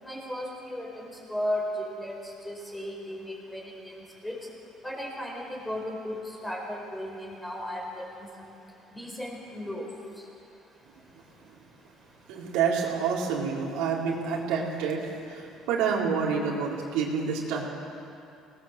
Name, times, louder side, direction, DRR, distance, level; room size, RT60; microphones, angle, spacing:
voice 1, 0.0-2.2 2.4-3.6 4.2-4.4 4.8-8.1 8.9-9.9, equal, 5° left, 0 dB, 4.7 m, -35 dB
voice 2, 12.3-17.7, right 6 dB, 85° right, -3 dB, 4.1 m, -28 dB
24.5 x 19.0 x 7.5 m, 2.6 s
cardioid pair, 145°, 0 cm